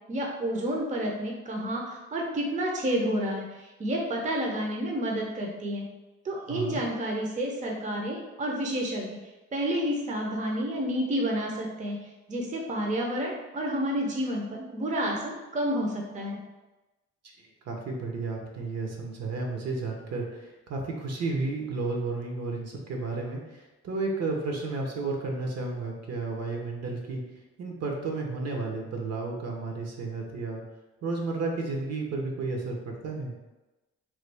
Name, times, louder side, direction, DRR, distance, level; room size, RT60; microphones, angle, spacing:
voice 1, 0.1-5.8 6.2-9.2 9.5-12.0 12.3-16.4, equal, 25° right, 0 dB, 0.6 m, -30 dB
voice 2, 6.5-6.8 17.4-27.2 27.6-30.6 31.0-33.3, right 3 dB, 60° right, 1 dB, 0.8 m, -32 dB
3.1 x 2.3 x 3.3 m, 1.1 s
cardioid pair, 90°, 30 cm